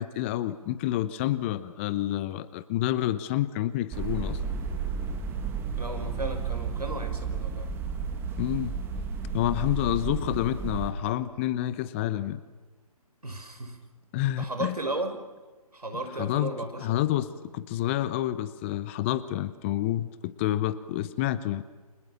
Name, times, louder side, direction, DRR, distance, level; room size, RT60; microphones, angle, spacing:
voice 1, 0.0-4.4 8.4-8.7 9.3-12.4 14.1-14.8 16.1-21.6, left 13 dB, 20° left, 15 dB, 0.9 m, -28 dB
sound 1, 3.9-10.9, right 5 dB, 10° right, 2.3 m, -32 dB
voice 2, 5.8-7.7 13.2-13.8 14.4-15.2 15.7-17.0, right 2 dB, 80° right, 7 dB, 5.5 m, -34 dB
29.5 x 27.5 x 7.3 m, 1.3 s
figure-of-eight pair, 140°, 20 cm